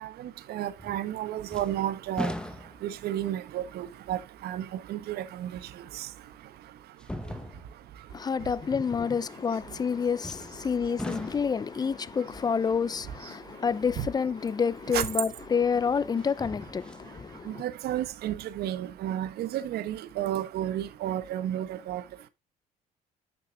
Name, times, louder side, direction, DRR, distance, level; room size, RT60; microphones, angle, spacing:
voice 1, 0.0-2.3 2.8-5.5 5.9-6.1 14.0-14.1 14.9-15.1 17.5-22.0, right 12 dB, 70° right, 1.0 m, -32 dB
sound 1, 0.8-1.2 1.5-3.1 3.7-3.8 5.6-5.7 7.0-7.9 10.2-10.7 11.0-11.7 14.7-14.8 16.2-17.1 17.5-17.6, left 1 dB, 5° left, 1.0 m, -38 dB
voice 2, 8.1-17.6, left 6 dB, 25° left, 0.5 m, -28 dB
8.9 x 6.6 x 2.4 m
cardioid pair, 110°, 17 cm